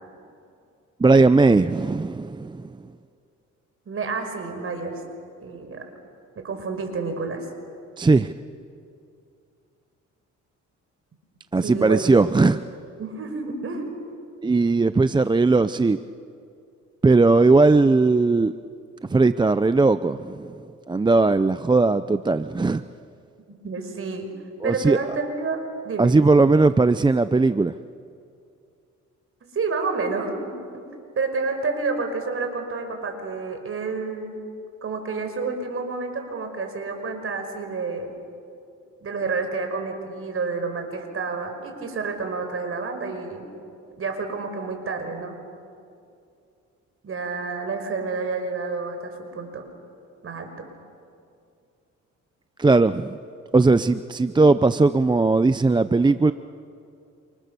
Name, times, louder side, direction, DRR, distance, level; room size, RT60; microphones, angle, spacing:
voice 1, 1.0-2.7 8.0-8.3 11.5-12.6 14.4-16.0 17.0-18.5 19.1-20.5 20.9-22.8 24.6-25.0 26.0-27.7 52.6-53.2 53.5-56.3, right 3 dB, 15° right, 12 dB, 0.6 m, -18 dB
voice 2, 3.9-5.0 5.4-5.8 6.4-7.5 11.6-12.0 13.0-13.9 23.5-24.3 24.6-25.6 25.8-26.1 29.4-30.5 31.2-34.4 34.8-38.1 39.0-43.5 44.0-45.4 47.0-49.6 50.2-50.7, right 4 dB, 45° right, 5 dB, 5.4 m, -29 dB
29.0 x 27.0 x 6.9 m, 2.4 s
cardioid pair, 90°, 30 cm